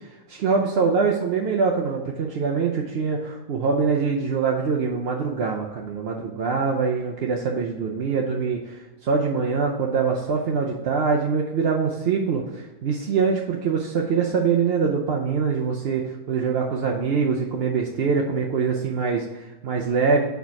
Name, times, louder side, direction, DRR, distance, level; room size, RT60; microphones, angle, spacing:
voice 1, 0.0-20.2, right 5 dB, 65° right, 0 dB, 0.6 m, -24 dB
4.7 x 4.5 x 5.6 m, 1.1 s
omnidirectional pair, 1.7 m